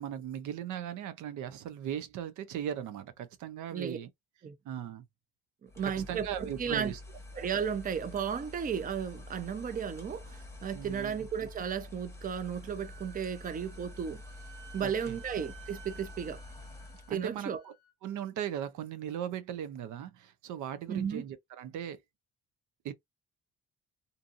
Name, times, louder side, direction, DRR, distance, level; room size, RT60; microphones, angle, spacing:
voice 1, 0.0-4.1 4.6-5.0 5.8-7.0 10.7-11.2 14.8-15.2 17.1-17.7 18.0-22.0 22.8-22.9, right 10 dB, 80° right, 0.5 m, -38 dB
voice 2, 5.6-6.9 7.3-14.2 14.7-16.4 17.1-17.6 20.9-21.2, right 7 dB, 30° right, 0.5 m, -34 dB
sound 1, 5.7-17.2, left 2 dB, 10° left, 1.0 m, -48 dB
Wind instrument woodwind instrument, 12.8-17.9, right 9 dB, 60° right, 1.4 m, -54 dB
2.6 x 2.6 x 2.4 m
cardioid pair, 90°, 30 cm